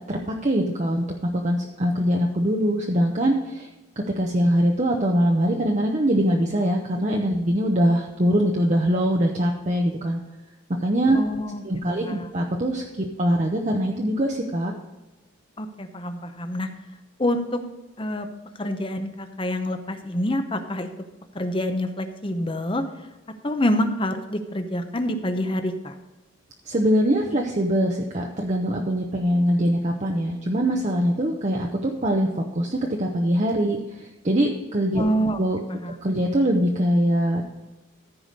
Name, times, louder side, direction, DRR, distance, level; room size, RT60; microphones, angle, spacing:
voice 1, 0.1-3.7 4.2-10.2 10.8-11.2 11.6-14.7 26.6-35.0 35.4-35.6 36.0-37.4, equal, 35° right, 0 dB, 0.8 m, -23 dB
voice 2, 11.1-11.6 11.9-12.3 15.6-16.7 17.2-17.6 18.0-18.3 18.6-20.9 21.3-22.8 23.4-26.0 35.0-35.4 35.7-35.9, left 1 dB, 25° left, 7 dB, 0.8 m, -26 dB
14.5 x 4.9 x 5.2 m, 1.1 s
head